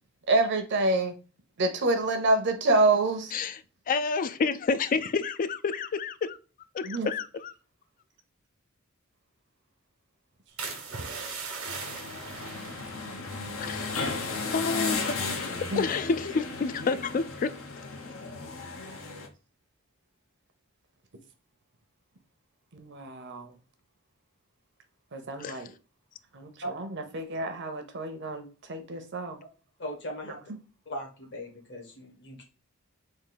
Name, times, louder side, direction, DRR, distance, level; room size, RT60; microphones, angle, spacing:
voice 1, 0.3-1.2 1.6-3.3 6.8-7.1 15.5-15.8 22.7-23.5 25.1-25.7 26.3-29.4, right 2 dB, 55° right, 0.7 m, -27 dB
voice 2, 3.9-6.4 6.7-7.5 13.6-14.0 14.5-15.5 15.7-17.5 18.0-18.1 25.4-25.6, left 4 dB, 40° left, 0.3 m, -29 dB
sound 1, 10.6-14.3 14.6-15.0 15.4-15.7, right 4 dB, 85° right, 1.1 m, -40 dB
sound 2, 11.7-19.3, left 4 dB, 75° left, 0.8 m, -35 dB
voice 3, 29.8-30.4 30.9-32.4, equal, 60° left, 1.4 m, -38 dB
3.7 x 2.5 x 3.9 m
head